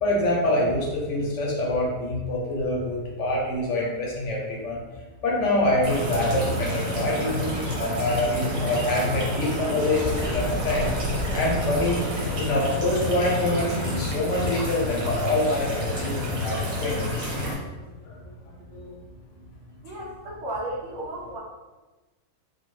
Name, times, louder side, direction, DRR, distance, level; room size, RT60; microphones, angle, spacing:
voice 1, 0.0-4.8 5.2-11.0 11.3-17.3 17.8-18.9, left 1 dB, 65° left, -3 dB, 0.9 m, -26 dB
sound 1, 5.8-17.5, left 1 dB, 85° right, 1.2 m, -29 dB
sound 2, 10.0-14.1, equal, 35° left, 0.4 m, -36 dB
voice 2, 19.8-21.4, right 1 dB, 70° right, -4 dB, 1.0 m, -34 dB
2.8 x 2.3 x 3.0 m, 1.2 s
omnidirectional pair, 1.5 m